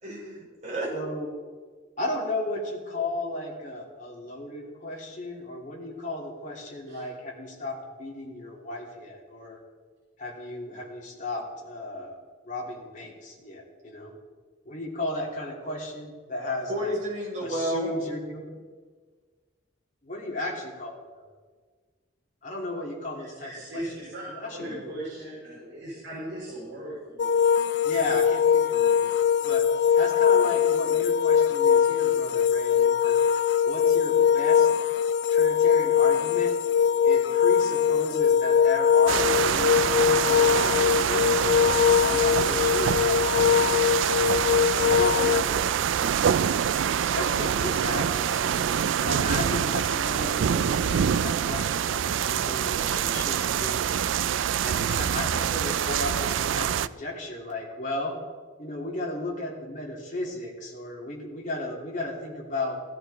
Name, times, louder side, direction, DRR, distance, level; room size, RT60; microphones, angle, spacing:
voice 1, 0.0-0.9 16.7-17.9, right 1 dB, 35° right, -4 dB, 5.5 m, -31 dB
voice 2, 0.9-1.3 2.0-9.6 10.2-12.2 12.4-14.1 14.6-16.9 17.4-18.5 20.0-21.3 22.4-23.8 24.3-25.0 27.8-29.7 29.9-33.2 33.6-34.7 35.3-36.6 37.0-41.4 42.0-43.5 44.2-45.5 46.9-54.0 54.6-58.2 58.6-62.8, left 2 dB, 40° left, -2 dB, 3.1 m, -35 dB
voice 3, 23.2-24.2 24.5-27.4, right 1 dB, 60° right, -7 dB, 5.6 m, -38 dB
sound 1, 27.2-45.4, left 8 dB, 60° left, 0.4 m, -22 dB
sound 2, 39.1-56.9, right 8 dB, 75° right, 0.4 m, -25 dB
17.0 x 13.0 x 4.3 m, 1.5 s
head